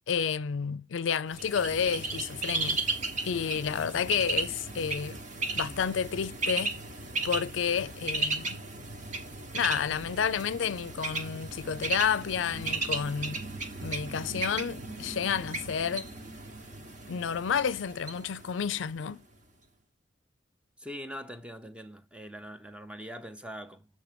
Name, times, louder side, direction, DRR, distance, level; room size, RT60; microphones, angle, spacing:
voice 1, 0.1-2.8 3.2-5.2 5.6-6.7 7.2-8.6 9.5-13.4 13.8-16.1 17.1-19.2, left 7 dB, 75° left, 0.4 m, -30 dB
Bird, 1.3-19.1, right 3 dB, 40° right, 1.1 m, -35 dB
voice 2, 20.8-23.9, equal, 5° right, 0.6 m, -42 dB
7.6 x 3.3 x 5.1 m
head